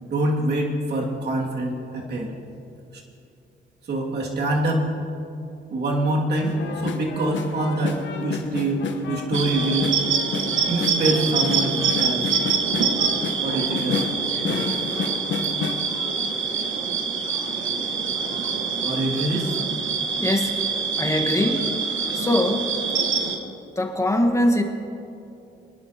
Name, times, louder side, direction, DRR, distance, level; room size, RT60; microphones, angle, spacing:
voice 1, 0.0-2.3 2.9-3.0 3.9-4.9 5.7-9.9 10.7-12.4 13.4-14.3 18.8-19.6, right 2 dB, 55° right, -1 dB, 2.5 m, -25 dB
sound 1, 6.4-16.8 17.2-19.6 20.2-20.3 20.6-20.8 21.4-22.3 22.7-22.8, left 6 dB, 70° left, 1.2 m, -32 dB
sound 2, 9.3-23.4, right 6 dB, 75° right, 1.4 m, -25 dB
voice 2, 20.2-20.6 21.0-21.6 22.1-22.7 23.8-24.6, left 1 dB, 15° left, 3 dB, 1.5 m, -21 dB
24.0 x 10.5 x 2.9 m, 2.7 s
cardioid pair, 90°, 20 cm